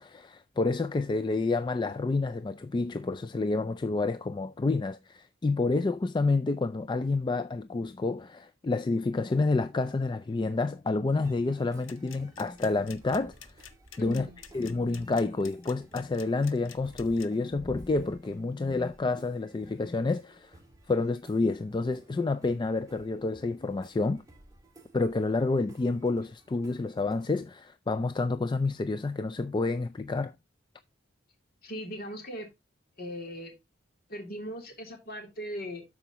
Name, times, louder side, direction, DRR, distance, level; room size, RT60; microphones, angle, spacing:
voice 1, 0.0-13.3 14.0-14.3 14.5-20.5 20.9-24.2 24.9-30.3, left 3 dB, 25° left, 0.3 m, -29 dB
medieval sounding music edinburgh, 11.1-27.3, right 1 dB, 20° right, 1.9 m, -55 dB
sound 1, 11.8-17.3, left 9 dB, 90° left, 1.1 m, -48 dB
voice 2, 14.0-14.4 31.6-32.5 33.0-33.5 34.1-35.8, equal, 50° left, 3.2 m, -39 dB
12.5 x 5.0 x 2.9 m
head